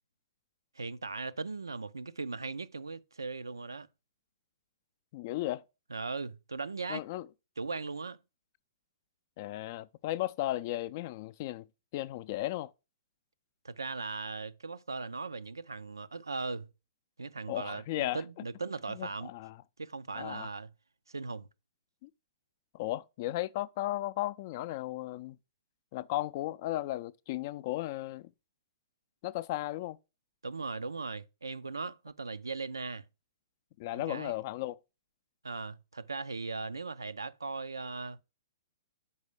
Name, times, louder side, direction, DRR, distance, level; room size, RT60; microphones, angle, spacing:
voice 1, 0.8-3.9 5.9-7.0 7.6-8.2 13.6-16.7 17.2-19.3 19.8-20.7 21.1-21.5 30.4-33.0 33.9-34.3 35.4-38.2, right 3 dB, 90° right, 0.4 m, -38 dB
voice 2, 5.1-5.6 6.9-7.3 9.4-11.7 11.9-12.7 17.5-18.2 18.9-19.6 20.2-20.5 22.0-22.1 22.7-25.4 25.9-28.3 29.2-30.0 33.8-34.8, left 15 dB, 45° left, 0.4 m, -35 dB
5.5 x 4.3 x 4.8 m
hypercardioid pair, 120°, 2 cm